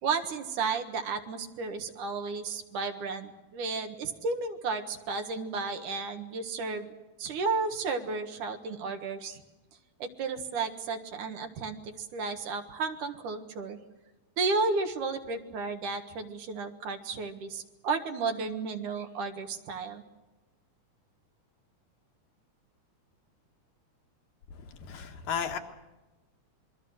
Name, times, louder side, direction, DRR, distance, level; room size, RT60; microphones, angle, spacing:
voice 1, 0.0-6.9 7.2-9.4 10.0-13.8 14.4-20.0, right 4 dB, 70° right, 6 dB, 3.1 m, -33 dB
voice 2, 24.8-25.6, left 7 dB, 90° left, 4 dB, 3.3 m, -33 dB
26.5 x 23.0 x 6.4 m, 1.1 s
omnidirectional pair, 3.8 m